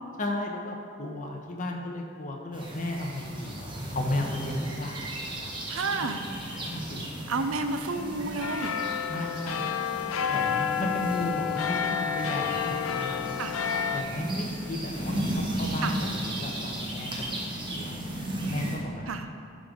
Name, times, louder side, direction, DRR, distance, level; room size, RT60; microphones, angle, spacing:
voice 1, 0.2-5.4 6.5-7.0 9.1-9.8 10.3-13.2 13.9-17.1 17.5-18.1 18.5-19.1, left 1 dB, 40° left, 1 dB, 1.0 m, -34 dB
sound 1, 2.5-18.8, right 1 dB, 25° right, 1.2 m, -35 dB
voice 2, 5.7-6.2 7.3-8.7 13.4-13.6 15.8-16.0 19.1-19.3, right 3 dB, 85° right, 8 dB, 0.6 m, -30 dB
sound 2, 8.4-14.0, left 8 dB, 90° left, 0.5 m, -30 dB
12.0 x 5.3 x 3.8 m, 2.3 s
head